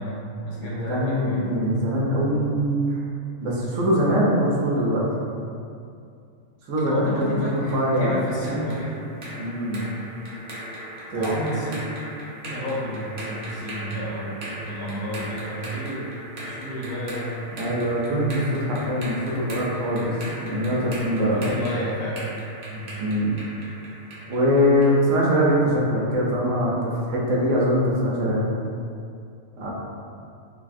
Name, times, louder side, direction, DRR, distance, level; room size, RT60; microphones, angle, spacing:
voice 1, 0.0-1.5 6.8-8.9 11.1-11.8 12.4-16.1 16.4-17.3 20.7-22.2 22.7-22.9, equal, 80° left, -6 dB, 1.1 m, -31 dB
voice 2, 0.6-3.0 3.4-5.0 6.7-8.2 8.5-8.7 9.4-9.8 11.1-11.3 11.7-11.8 17.5-21.5 23.0-23.4 24.3-28.4 29.6-29.7, equal, 65° right, -4 dB, 0.9 m, -23 dB
sound 1, 7.2-25.0, right 1 dB, 85° right, 0.3 m, -38 dB
3.3 x 2.3 x 2.5 m, 2.5 s
omnidirectional pair, 1.6 m